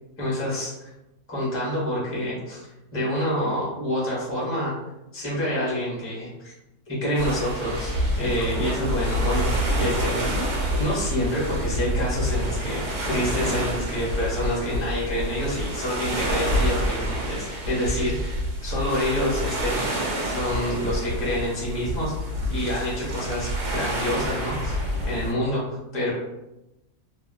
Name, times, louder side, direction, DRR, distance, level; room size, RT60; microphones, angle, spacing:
voice 1, 0.2-0.7 1.3-2.7 2.9-4.8 5.1-6.5 6.9-7.9 8.2-26.1, equal, 15° left, -6 dB, 0.6 m, -27 dB
sound 1, 7.1-25.3, equal, 70° right, 1.1 m, -27 dB
2.8 x 2.2 x 2.5 m, 0.93 s
omnidirectional pair, 1.7 m